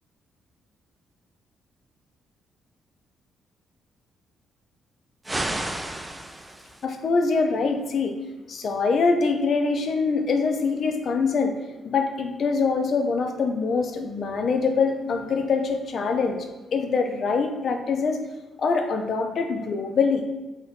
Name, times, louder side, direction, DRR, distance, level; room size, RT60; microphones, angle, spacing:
sound 1, 5.2-6.9, right 1 dB, 15° right, 0.4 m, -31 dB
voice 1, 6.8-8.1 8.5-11.5 11.8-18.2 18.6-20.2, left 4 dB, 55° left, 5 dB, 0.5 m, -24 dB
3.5 x 2.8 x 3.4 m, 1.1 s
hypercardioid pair, 40°, 0 cm